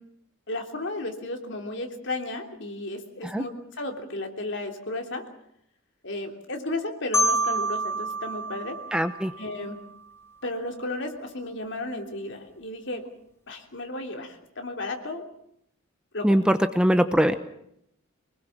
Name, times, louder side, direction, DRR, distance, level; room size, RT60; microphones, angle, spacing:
voice 1, 0.5-5.2 6.0-8.8 9.4-9.8 10.4-13.1 13.5-15.2 16.1-16.3, left 2 dB, 60° left, 4 dB, 3.2 m, -34 dB
Marimba xylophone, 7.1-10.0, right 1 dB, 10° left, 2.2 m, -28 dB
voice 2, 8.9-9.3 16.2-17.4, equal, 5° right, 9 dB, 0.8 m, -21 dB
24.5 x 20.0 x 7.3 m, 0.74 s
head